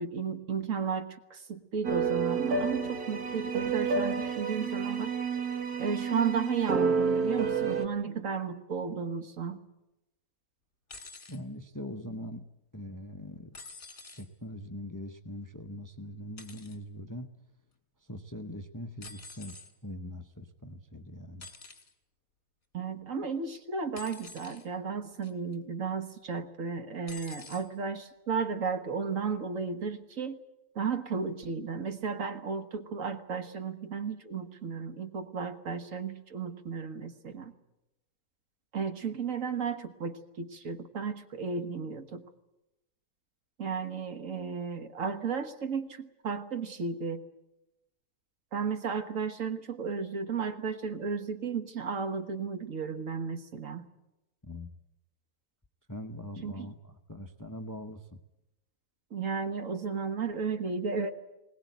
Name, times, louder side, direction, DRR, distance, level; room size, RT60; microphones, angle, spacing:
voice 1, 0.0-5.1 5.8-9.6 22.7-30.4 30.8-37.5 38.7-42.2 43.6-47.2 48.5-53.9 56.4-56.7 59.1-61.1, right 5 dB, 60° right, 8 dB, 1.7 m, -34 dB
sound 1, 1.8-7.9, right 5 dB, 80° right, 1.8 m, -30 dB
sound 2, 10.9-11.4 13.5-14.3 16.4-16.8 19.0-19.7 21.4-21.9 24.0-24.7 25.2-25.5 27.1-27.7 28.7-28.8, left 4 dB, 50° left, 2.4 m, -47 dB
voice 2, 11.3-12.4 12.7-13.5 14.2-17.3 18.1-19.5 19.8-21.5 54.4-54.7 55.9-58.0, left 1 dB, 15° left, 8 dB, 0.8 m, -42 dB
21.0 x 18.5 x 9.3 m, 0.92 s
omnidirectional pair, 1.6 m